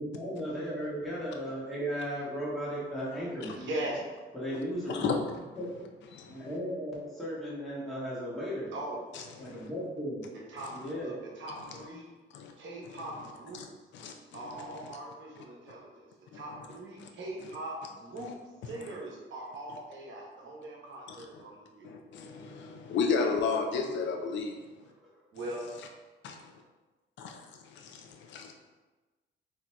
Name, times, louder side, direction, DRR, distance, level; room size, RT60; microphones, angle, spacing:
voice 1, 0.0-3.6 4.3-5.2 5.6-5.8 6.3-8.7 9.4-10.3 10.7-11.1 23.7-24.0, equal, ahead, -9 dB, 1.4 m, -36 dB
voice 2, 3.6-4.0 8.7-9.0 10.5-10.7 11.0-12.1 12.6-13.6 14.3-16.1 16.3-18.4 18.7-22.0 25.3-25.7, right 1 dB, 70° right, -2 dB, 0.9 m, -40 dB
voice 3, 6.1-6.5 9.4-9.7 12.3-12.5 13.5-13.7 13.9-14.1 14.5-15.0 16.3-16.6 17.0-17.1 21.8-24.6 26.2-26.4 27.2-27.4 27.7-28.5, left 5 dB, 65° left, 4 dB, 0.4 m, -33 dB
3.8 x 2.9 x 2.2 m, 1.2 s
cardioid pair, 90°, 20 cm